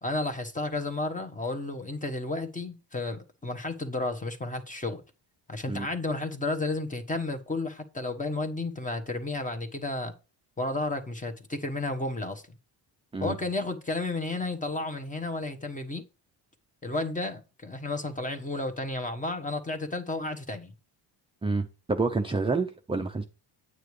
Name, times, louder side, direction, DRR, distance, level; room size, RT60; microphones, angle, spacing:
voice 1, 0.0-5.0 5.5-10.1 10.6-12.6 13.2-16.0 16.8-20.7, left 2 dB, 15° left, 1.2 m, -32 dB
voice 2, 21.4-23.2, right 3 dB, 10° right, 0.5 m, -28 dB
9.4 x 9.0 x 3.2 m
cardioid pair, 140°, 45 cm